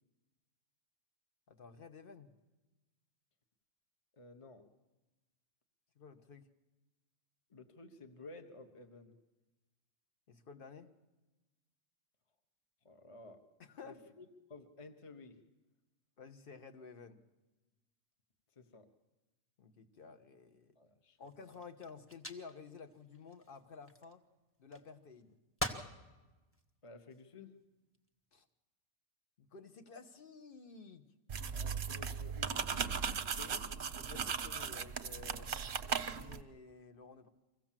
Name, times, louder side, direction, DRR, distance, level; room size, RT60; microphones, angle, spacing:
voice 1, 1.5-2.3 6.0-6.5 10.3-10.9 13.6-14.1 16.2-17.2 19.6-20.7 21.2-24.2 24.6-25.4 28.3-28.4 29.4-31.1 33.4-35.6 35.8-37.3, left 5 dB, 45° left, 8 dB, 1.3 m, -53 dB
voice 2, 4.1-4.6 7.5-9.2 12.8-13.4 13.8-15.4 18.5-18.9 20.7-21.2 26.8-27.5 31.5-33.6, left 3 dB, 25° left, 6 dB, 1.1 m, -54 dB
sound 1, 21.2-24.2 24.7-25.3 25.6-25.9 26.5-27.3 27.9-28.3, left 1 dB, 10° left, 1.2 m, -44 dB
sound 2, 31.3-36.4, right 6 dB, 45° right, 0.8 m, -38 dB
24.5 x 16.0 x 7.5 m, 1.1 s
omnidirectional pair, 1.4 m